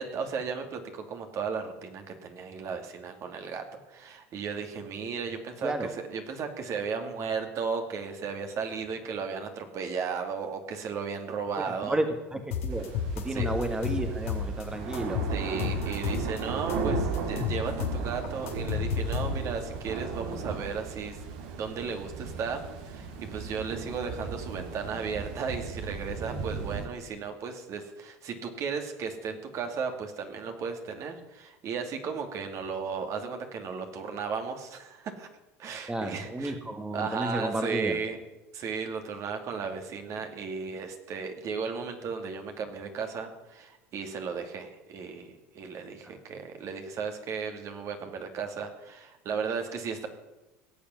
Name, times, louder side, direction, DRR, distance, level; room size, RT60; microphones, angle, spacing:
voice 1, 0.0-3.6 3.9-12.0 13.3-13.5 15.3-21.2 21.6-35.3 35.6-36.5 36.9-38.2 38.5-50.1, right 5 dB, 50° right, 5 dB, 2.5 m, -35 dB
voice 2, 11.6-12.1 12.3-12.9 13.2-15.2 35.9-38.0, right 1 dB, 10° right, 6 dB, 1.7 m, -32 dB
sound 1, 12.5-14.6 14.9-16.4 16.7-19.6, left 5 dB, 85° left, 2.7 m, -31 dB
sound 2, 12.7-26.9, right 5 dB, 70° right, 2.6 m, -36 dB
17.0 x 7.1 x 9.6 m, 1.0 s
hypercardioid pair, 90°, 7 cm